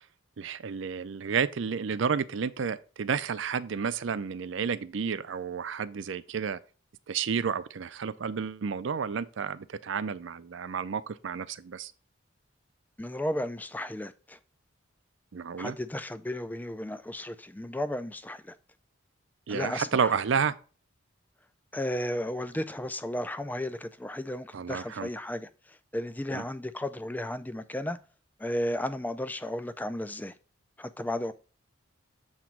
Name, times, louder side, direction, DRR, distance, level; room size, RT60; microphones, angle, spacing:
voice 1, 0.4-6.6 7.1-11.9 15.3-15.8 19.5-20.5 24.5-25.1 26.3-26.4, right 6 dB, 65° right, 0.4 m, -31 dB
voice 2, 13.0-14.4 15.6-18.5 19.5-20.1 21.7-28.0 28.4-30.3 30.8-31.3, left 1 dB, 10° left, 0.3 m, -34 dB
7.3 x 3.0 x 5.8 m
head